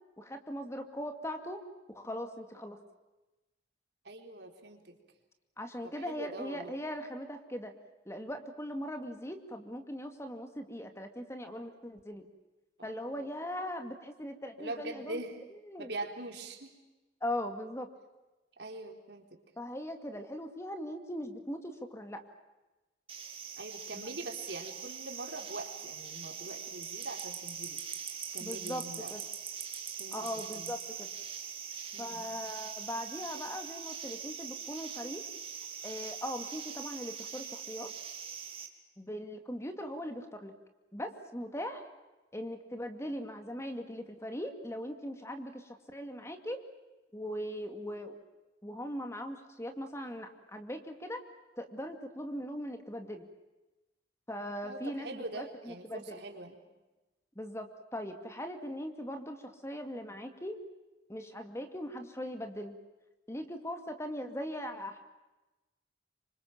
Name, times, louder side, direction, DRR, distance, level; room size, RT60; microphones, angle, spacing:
voice 1, 0.2-1.6 1.9-2.8 5.6-7.7 8.1-12.3 12.8-15.2 15.7-15.9 17.2-17.9 19.6-22.2 23.9-24.1 28.4-28.8 29.1-29.2 30.1-31.1 32.0-35.2 35.8-37.9 39.0-40.5 40.9-41.8 42.3-46.6 47.1-48.2 48.6-51.2 51.6-53.3 54.3-56.2 57.4-60.6 61.1-62.8 63.3-65.0, equal, 15° left, 6 dB, 2.3 m, -40 dB
voice 2, 4.0-5.0 5.8-6.7 12.8-13.3 14.6-15.4 15.8-16.7 18.6-19.4 23.6-27.8 28.3-29.1 30.0-30.7 31.9-32.4 54.6-56.6, right 2 dB, 75° right, 3 dB, 4.0 m, -43 dB
sound 1, 23.1-38.7, right 7 dB, 30° right, 2.8 m, -42 dB
27.0 x 25.5 x 7.4 m, 1.1 s
head